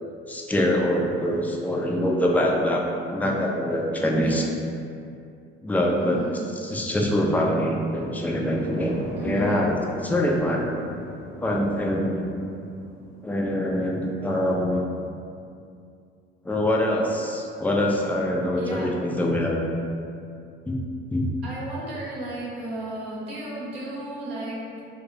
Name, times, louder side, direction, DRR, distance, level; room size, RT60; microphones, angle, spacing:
voice 1, 0.3-2.8 3.1-4.5 5.6-6.2 6.6-9.8 10.0-10.8 11.4-12.2 13.2-14.8 16.4-19.6 20.7-20.8 21.1-21.3, left 1 dB, 5° left, -1 dB, 0.3 m, -24 dB
voice 2, 6.0-6.4 9.2-9.7 18.6-18.9 21.4-24.6, right 1 dB, 80° right, -7 dB, 0.8 m, -34 dB
sound 1, 7.1-14.1, right 1 dB, 30° right, 0.8 m, -41 dB
2.4 x 2.2 x 3.9 m, 2.5 s
figure-of-eight pair, 55°, 30 cm